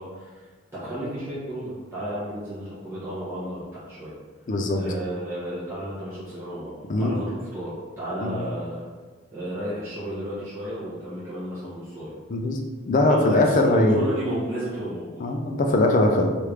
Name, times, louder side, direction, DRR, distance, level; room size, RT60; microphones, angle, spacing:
voice 1, 0.0-4.1 4.7-8.9 9.3-12.1 13.1-15.2, right 1 dB, 10° right, -12 dB, 0.7 m, -33 dB
voice 2, 4.5-4.8 6.9-7.2 8.2-8.4 12.3-12.6 12.9-14.1 15.2-16.3, left 2 dB, 35° left, 2 dB, 0.3 m, -21 dB
3.1 x 2.4 x 3.2 m, 1.4 s
head